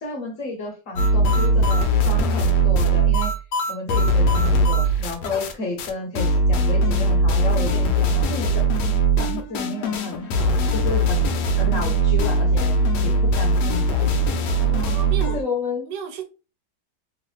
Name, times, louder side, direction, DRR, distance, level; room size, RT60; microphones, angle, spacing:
voice 1, 0.0-3.3 3.7-8.7 9.2-14.4 15.3-15.9, left 2 dB, 55° left, 1.1 m, -32 dB
sound 1, 1.0-5.5 5.8-5.9 6.2-15.4, right 1 dB, 75° left, 1.1 m, -20 dB
voice 2, 14.5-15.4 15.9-16.3, right 7 dB, 85° right, 1.3 m, -34 dB
3.1 x 2.4 x 3.1 m
omnidirectional pair, 1.9 m